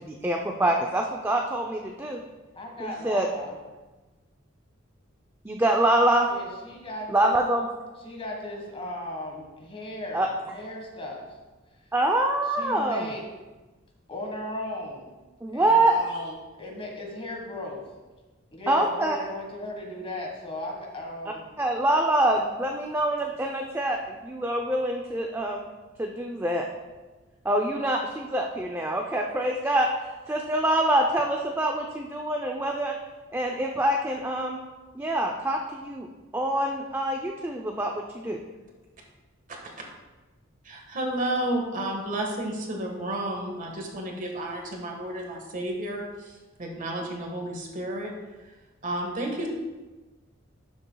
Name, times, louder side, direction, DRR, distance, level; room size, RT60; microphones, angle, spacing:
voice 1, 0.0-2.2 2.8-3.3 5.4-6.3 7.1-7.7 10.1-10.3 11.9-13.1 15.4-16.2 18.7-19.2 21.6-25.6 26.0-26.7 27.4-29.9 30.3-33.0 33.3-34.6 34.9-36.1 36.3-38.4, right 1 dB, 10° right, 1 dB, 0.5 m, -25 dB
voice 2, 2.5-3.6 6.3-7.3 8.0-11.3 12.6-13.2 14.1-15.1 15.5-17.8 18.5-21.5, left 1 dB, 30° left, 0 dB, 1.5 m, -36 dB
voice 3, 40.6-48.1 48.8-49.5, right 1 dB, 40° right, 1 dB, 1.5 m, -31 dB
12.0 x 7.1 x 2.3 m, 1.2 s
head